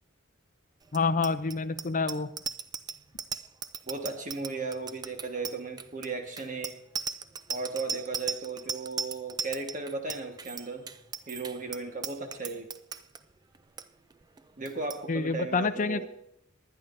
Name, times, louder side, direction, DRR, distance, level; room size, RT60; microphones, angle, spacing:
voice 1, 0.9-2.3 15.1-16.1, left 4 dB, 40° left, 11 dB, 0.5 m, -28 dB
Bicycle bell, 0.9-13.2 13.5-13.8 14.1-14.4 14.6-15.0, right 6 dB, 20° right, 0.3 m, -37 dB
voice 2, 3.9-6.8 7.5-10.9 11.3-12.7 14.6-16.1, right 3 dB, 40° right, 4 dB, 1.5 m, -36 dB
19.5 x 10.5 x 2.6 m, 0.75 s
head